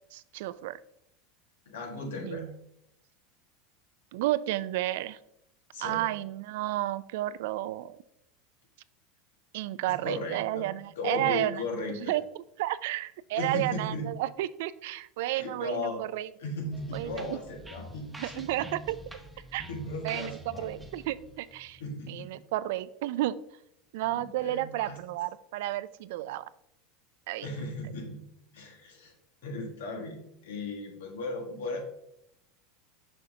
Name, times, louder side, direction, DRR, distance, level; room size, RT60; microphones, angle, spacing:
voice 1, 0.1-0.8 2.2-2.5 4.1-5.2 5.8-8.0 9.5-11.6 12.1-12.2 12.6-16.3 16.9-17.4 18.2-19.0 19.5-19.7 20.0-21.8 22.1-23.4 23.9-26.4 27.3-27.5, right 15 dB, 75° right, 16 dB, 0.3 m, -32 dB
voice 2, 1.7-2.5 5.7-6.1 9.9-10.7 11.0-12.1 13.3-14.1 15.3-16.0 16.4-18.5 19.7-20.8 21.8-22.3 24.0-25.0 27.4-28.2 28.5-29.1 29.4-31.8, left 2 dB, 85° left, 2 dB, 1.6 m, -36 dB
sound 1, 16.7-22.3, right 1 dB, 10° right, 0.7 m, -46 dB
6.5 x 5.6 x 2.7 m, 0.78 s
hypercardioid pair, 105°, 0 cm